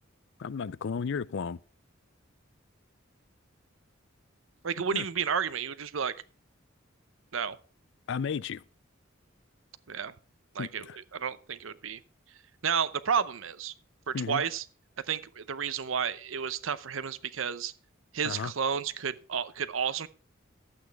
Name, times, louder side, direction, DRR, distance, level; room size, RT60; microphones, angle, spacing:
voice 1, 0.4-1.6 4.9-5.1 8.1-8.6 10.6-11.0 14.1-14.4 18.2-18.5, left 6 dB, 65° left, 0.4 m, -33 dB
voice 2, 4.6-6.1 7.3-7.6 9.9-10.1 10.5-10.8 11.1-12.0 12.6-13.7 14.1-14.6 15.1-17.7 18.1-20.1, right 7 dB, 75° right, 0.7 m, -31 dB
11.5 x 8.6 x 4.7 m
head